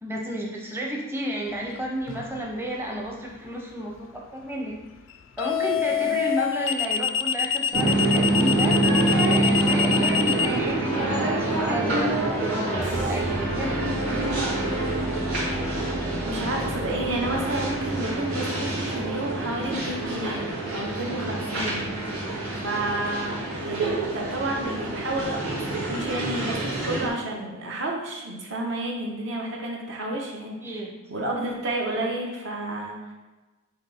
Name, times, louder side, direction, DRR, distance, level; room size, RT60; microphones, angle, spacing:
voice 1, 0.0-4.1 4.4-4.7 5.4-13.3 13.6-13.8 30.6-30.9, right 1 dB, 10° right, -2 dB, 0.8 m, -32 dB
sound 1, 2.1-2.4 5.4-10.5, left 8 dB, 65° left, 0.4 m, -25 dB
sound 2, 7.7-27.1, right 2 dB, 90° right, 2.0 m, -26 dB
sound 3, 12.7-18.9, equal, 40° right, 1.0 m, -34 dB
voice 2, 16.2-21.9 22.2-30.8 31.1-33.1, right 1 dB, 60° right, -1 dB, 1.2 m, -31 dB
7.9 x 3.2 x 4.3 m, 1.1 s
head